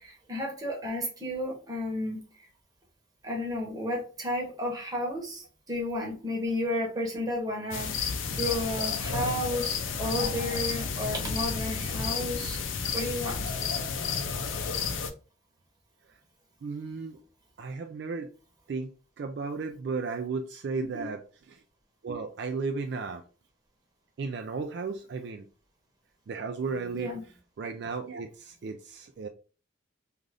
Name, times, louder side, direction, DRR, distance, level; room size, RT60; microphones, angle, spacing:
voice 1, 0.0-2.2 3.2-12.6 12.9-13.4 20.9-21.0 26.9-27.2, left 1 dB, 20° right, 0.9 m, -32 dB
sound 1, 7.7-15.1, left 5 dB, 85° left, 0.5 m, -31 dB
voice 2, 16.6-17.2 17.6-18.3 18.7-21.2 21.5-21.6 22.0-23.2 24.2-25.4 26.3-29.3, right 4 dB, 60° right, 0.3 m, -35 dB
2.5 x 2.4 x 3.2 m
head